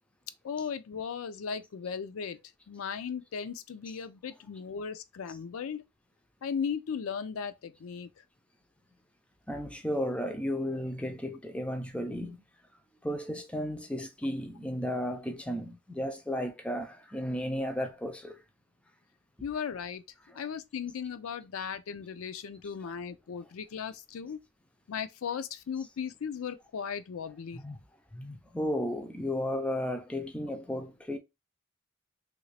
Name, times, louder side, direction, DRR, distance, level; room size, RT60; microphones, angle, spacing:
voice 1, 0.4-2.4 2.7-5.8 6.4-8.1 19.4-20.0 20.3-24.4 24.9-27.6, left 6 dB, 75° left, 0.4 m, -37 dB
voice 2, 9.5-12.4 13.0-18.4 20.3-20.4 27.5-27.8 28.1-31.2, equal, 5° left, 0.4 m, -34 dB
3.2 x 2.5 x 3.2 m
head